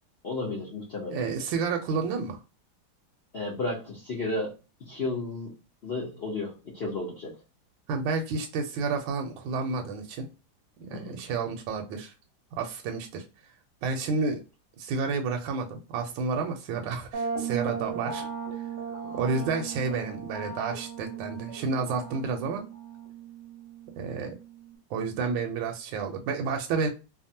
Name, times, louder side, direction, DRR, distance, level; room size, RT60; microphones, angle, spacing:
voice 1, 0.2-1.2 3.3-5.5 5.8-7.3 10.9-11.2 18.9-19.5, left 2 dB, 75° left, -4 dB, 0.5 m, -33 dB
voice 2, 1.1-2.4 7.9-10.3 10.8-12.1 12.5-13.2 13.8-14.4 14.8-18.3 19.1-22.6 24.0-24.3 24.9-26.9, right 4 dB, 80° right, 3 dB, 1.3 m, -30 dB
sound 1, 17.1-24.7, right 6 dB, 55° right, 0.7 m, -37 dB
3.4 x 2.0 x 2.6 m, 0.29 s
omnidirectional pair, 2.2 m